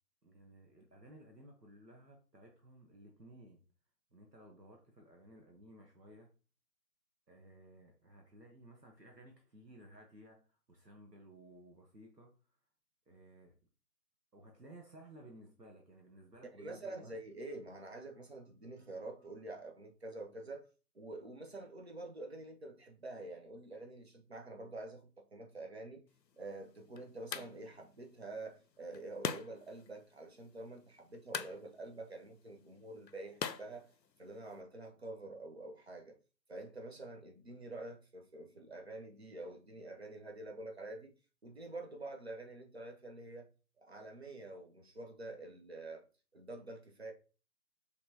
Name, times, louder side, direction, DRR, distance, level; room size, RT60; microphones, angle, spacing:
voice 1, 0.2-3.6 4.1-6.3 7.3-12.3 13.1-13.5 14.3-17.2, right 1 dB, 75° right, 1.3 m, -57 dB
voice 2, 16.6-20.7 20.9-26.0 26.4-33.9 34.2-36.2 36.5-41.1 41.4-43.5 43.8-46.0 46.3-47.1, right 2 dB, 40° right, 0.8 m, -47 dB
sound 1, 26.1-34.6, left 6 dB, 75° left, 0.6 m, -46 dB
5.4 x 3.3 x 2.8 m
figure-of-eight pair, 155°, 50 cm